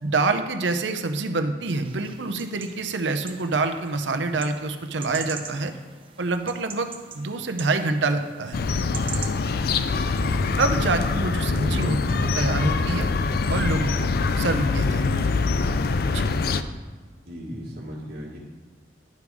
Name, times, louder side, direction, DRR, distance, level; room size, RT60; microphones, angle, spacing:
voice 1, 0.0-5.7 6.2-6.9 7.1-8.6 10.6-13.1 13.5-14.1 14.4-15.3 16.1-16.3, right 3 dB, 90° right, 8 dB, 0.7 m, -26 dB
sound 1, 1.7-10.7, right 6 dB, 30° right, 0.7 m, -43 dB
sound 2, 8.5-16.6, left 4 dB, 55° left, 0.4 m, -24 dB
voice 2, 11.1-12.0 17.2-18.4, equal, 60° right, -4 dB, 1.7 m, -36 dB
10.5 x 5.3 x 4.8 m, 1.4 s
head